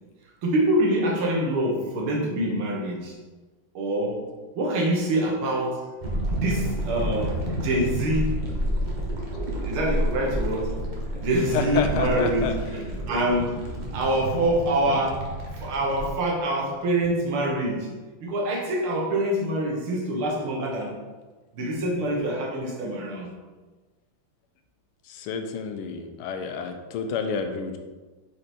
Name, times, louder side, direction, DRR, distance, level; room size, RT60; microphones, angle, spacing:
voice 1, 0.4-3.2 3.8-4.2 4.6-5.8 6.4-8.4 9.6-10.8 11.2-12.8 13.1-15.2 15.5-17.9 18.2-21.0 21.5-23.3, right 1 dB, 80° right, -1 dB, 2.0 m, -25 dB
sound 1, 6.0-16.1, equal, 55° right, 0.5 m, -30 dB
voice 2, 11.3-12.5 25.1-27.8, left 6 dB, 85° left, 6 dB, 1.5 m, -29 dB
5.1 x 4.4 x 4.2 m, 1.3 s
omnidirectional pair, 2.4 m